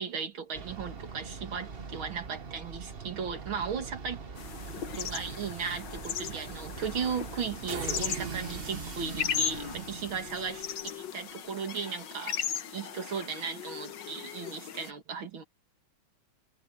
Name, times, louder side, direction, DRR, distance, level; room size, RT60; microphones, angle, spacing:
voice 1, 0.0-4.2 4.9-15.4, right 6 dB, 75° right, 2.7 m, -36 dB
sound 1, 0.5-10.8, right 5 dB, 35° right, 1.2 m, -41 dB
sound 2, 4.4-14.9, left 8 dB, 60° left, 1.8 m, -37 dB
omnidirectional pair, 2.3 m